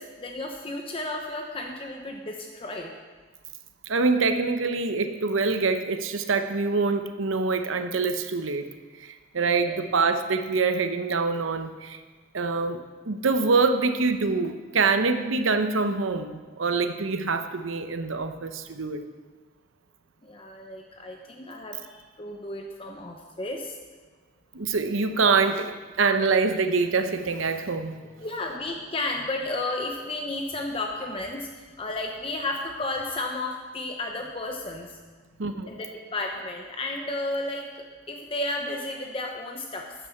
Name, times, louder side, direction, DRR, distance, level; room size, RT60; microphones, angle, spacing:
voice 1, 0.0-2.9 9.4-9.8 20.2-23.8 28.2-34.9 35.2-35.4 35.7-37.7 38.1-39.9, left 2 dB, 25° left, 2 dB, 0.8 m, -33 dB
voice 2, 3.9-8.6 9.0-12.0 12.3-19.0 24.5-28.0 35.4-35.7, right 4 dB, 85° right, 8 dB, 0.8 m, -25 dB
13.0 x 9.4 x 4.4 m, 1.4 s
head